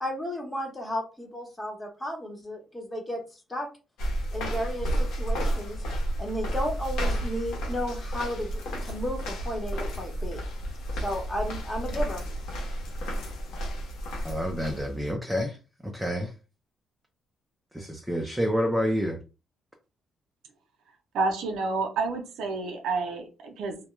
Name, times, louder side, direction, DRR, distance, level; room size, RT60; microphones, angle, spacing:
voice 1, 0.0-3.2 3.5-3.7 4.3-5.8 6.2-10.4 10.9-12.2, equal, 20° left, 0.9 m, -33 dB
sound 1, 4.0-15.1, right 1 dB, 90° left, 0.9 m, -31 dB
voice 2, 14.2-15.6 15.8-16.3 17.7-19.2, equal, 5° right, 0.5 m, -28 dB
voice 3, 21.1-23.8, right 3 dB, 85° right, 0.6 m, -29 dB
2.3 x 2.1 x 3.0 m
cardioid pair, 90°, 0 cm